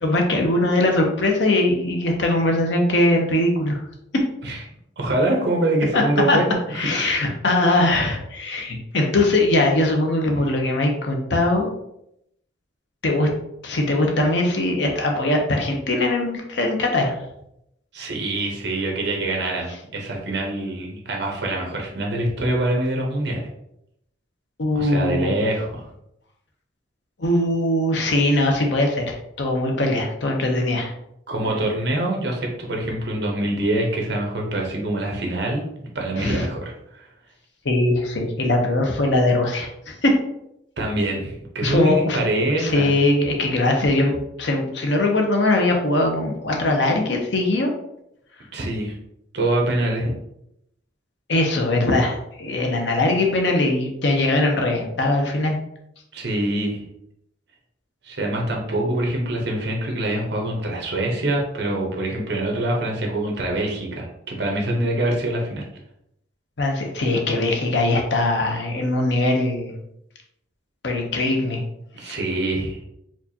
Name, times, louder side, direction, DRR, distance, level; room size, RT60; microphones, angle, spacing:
voice 1, 0.0-3.8 4.1-4.2 5.9-6.0 6.3-6.4 6.7-11.7 13.0-13.3 13.6-17.1 19.3-19.4 24.6-25.3 27.2-30.9 36.2-36.5 37.6-40.1 41.6-42.2 42.6-44.1 44.4-47.7 51.3-55.6 66.6-69.7 70.8-71.6 72.0-72.2, left 2 dB, 65° left, 2 dB, 0.7 m, -21 dB
voice 2, 5.0-7.2 17.9-23.5 24.7-25.9 31.3-37.1 40.8-42.9 48.5-48.9 49.3-50.2 56.1-56.8 58.0-65.7 71.9-72.8, right 1 dB, 60° right, 0 dB, 0.9 m, -25 dB
4.5 x 2.4 x 2.8 m, 0.79 s
head